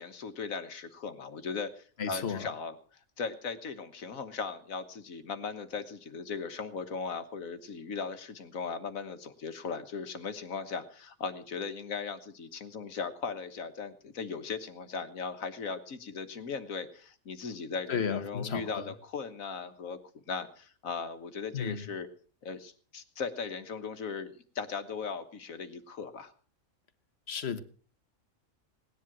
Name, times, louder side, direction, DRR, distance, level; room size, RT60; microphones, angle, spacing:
voice 1, 0.0-2.8 3.2-22.1 22.4-26.3, left 5 dB, 80° left, 9 dB, 1.7 m, -38 dB
voice 2, 2.0-2.5 17.9-18.9 21.5-21.8 27.3-27.6, left 6 dB, 50° left, 12 dB, 1.3 m, -33 dB
18.0 x 10.5 x 6.1 m, 0.43 s
omnidirectional pair, 1.4 m